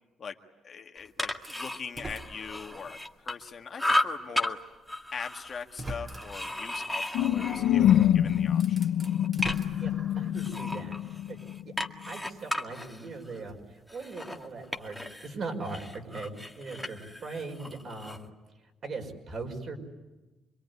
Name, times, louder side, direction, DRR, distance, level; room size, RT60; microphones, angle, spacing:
voice 1, 0.6-4.6 5.1-7.8 8.1-8.8, left 6 dB, 45° left, 3 dB, 1.9 m, -41 dB
sound 1, 1.0-3.5 3.8-4.5 4.9-8.4 8.8-9.9 10.3-15.3 15.6-18.2, left 1 dB, ahead, 2.1 m, -35 dB
sound 2, 1.4-3.1 3.6-3.7 4.9-5.0 5.6-6.6 8.0-8.1 8.5-10.5, right 1 dB, 30° right, 3.0 m, -42 dB
sound 3, 7.1-11.7, left 11 dB, 80° left, 0.9 m, -26 dB
voice 2, 9.8-11.4 11.7-11.8 12.1-18.2 18.8-19.8, right 3 dB, 50° right, 3 dB, 5.7 m, -40 dB
26.5 x 22.5 x 9.8 m, 1.1 s
cardioid pair, 90°, 0 cm